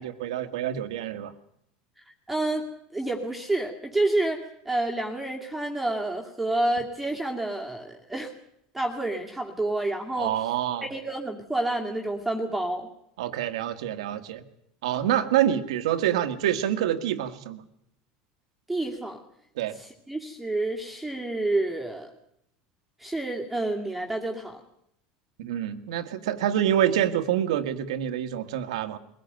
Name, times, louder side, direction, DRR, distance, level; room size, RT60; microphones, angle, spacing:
voice 1, 0.0-1.3 10.2-10.9 13.2-14.4 14.8-17.6 19.6-19.8 25.4-29.0, right 11 dB, 90° right, 9 dB, 1.7 m, -26 dB
voice 2, 2.3-8.3 8.7-10.3 10.8-12.9 18.7-19.2 19.8-22.1 23.0-24.6, right 2 dB, 5° right, -1 dB, 2.3 m, -29 dB
22.0 x 16.0 x 9.1 m, 0.76 s
supercardioid pair, 125°, 3 cm